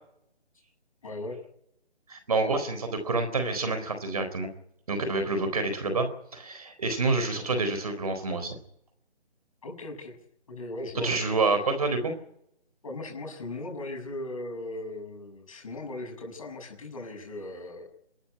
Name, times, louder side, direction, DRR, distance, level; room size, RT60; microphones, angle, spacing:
voice 1, 1.0-1.4 9.6-10.2 10.5-11.3 12.8-17.9, left 2 dB, 30° left, 2 dB, 6.6 m, -38 dB
voice 2, 2.1-4.5 4.9-8.6 11.0-12.1, right 3 dB, 35° right, 8 dB, 4.1 m, -28 dB
26.0 x 13.5 x 9.8 m, 0.76 s
hypercardioid pair, 175°, 33 cm